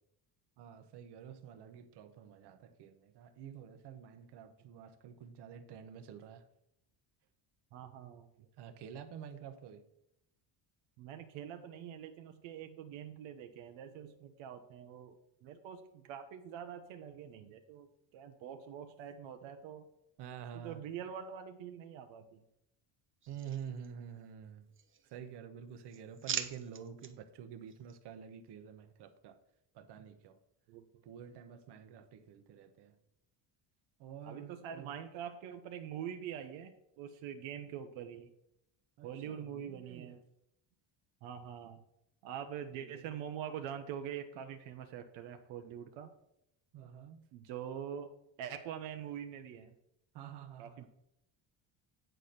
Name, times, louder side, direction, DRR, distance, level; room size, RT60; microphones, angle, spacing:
voice 1, 0.6-6.4 8.6-9.8 20.2-20.8 23.3-24.6 25.1-29.4 29.7-30.4 31.0-32.9 34.0-34.9 39.0-40.2 42.8-43.1 46.7-47.2 50.1-50.9, right 8 dB, 60° right, 1.0 m, -49 dB
voice 2, 7.7-8.3 11.0-19.8 20.5-22.4 30.7-30.9 34.2-38.3 39.0-40.2 41.2-41.8 42.2-46.1 47.3-48.1 48.4-49.8 50.6-50.9, right 9 dB, 85° right, 0.9 m, -44 dB
sound 1, 23.2-24.3 24.7-25.4 25.7-27.1 27.7-28.0, right 7 dB, 25° right, 0.7 m, -43 dB
9.0 x 4.3 x 6.6 m
cardioid pair, 125°, 45 cm